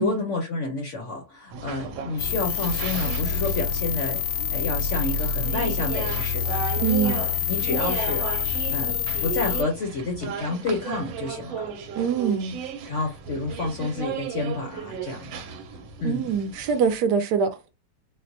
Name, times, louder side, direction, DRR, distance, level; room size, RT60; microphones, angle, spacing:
voice 1, 0.0-4.2 4.5-6.6 7.0-8.3 8.7-11.7 12.8-15.4 16.0-16.2, left 3 dB, 65° left, 0.7 m, -29 dB
sound 1, 1.5-16.9, right 6 dB, 90° right, 1.4 m, -35 dB
sound 2, 2.2-9.6, left 7 dB, 80° left, 1.3 m, -27 dB
voice 2, 6.8-7.2 11.9-12.6 16.0-17.8, right 7 dB, 75° right, 1.0 m, -24 dB
4.3 x 2.1 x 2.6 m
omnidirectional pair, 2.1 m